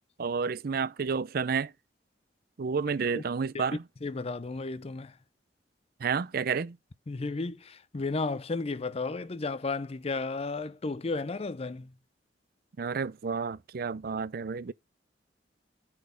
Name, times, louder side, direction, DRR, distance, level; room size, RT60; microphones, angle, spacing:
voice 1, 0.2-1.7 2.6-3.8 6.0-6.8 12.8-14.7, right 5 dB, 55° right, 0.5 m, -30 dB
voice 2, 4.0-5.2 7.1-11.9, left 3 dB, 35° left, 0.5 m, -33 dB
8.6 x 4.2 x 5.6 m
head